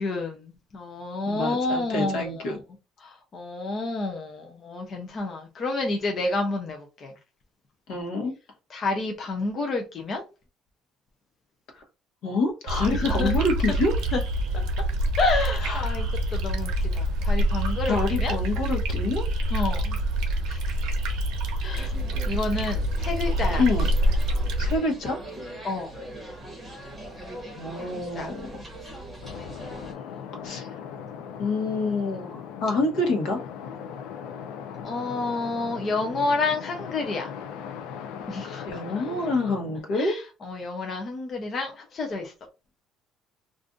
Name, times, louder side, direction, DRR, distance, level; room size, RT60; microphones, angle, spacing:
voice 1, 0.0-2.6 3.0-7.1 8.7-10.2 12.9-13.3 14.1-14.2 15.2-18.4 19.5-20.0 20.5-20.9 21.6-21.9 22.3-23.7 25.6-25.9 27.8-28.3 34.8-37.3 38.3-39.3 39.9-42.3, left 3 dB, 30° left, 0.5 m, -29 dB
voice 2, 1.3-2.6 7.9-8.3 11.7-11.8 12.2-13.9 15.6-16.1 17.9-19.2 23.6-23.9 24.6-25.2 27.6-28.5 30.4-30.7 31.4-33.4 38.7-40.2, left 2 dB, 65° left, 1.0 m, -27 dB
sound 1, 12.7-24.8, right 1 dB, 75° right, 0.8 m, -26 dB
sound 2, 21.7-29.9, right 1 dB, 5° right, 0.9 m, -41 dB
sound 3, 29.2-39.8, left 7 dB, 90° left, 0.4 m, -39 dB
2.5 x 2.4 x 3.6 m
cardioid pair, 180°, 0 cm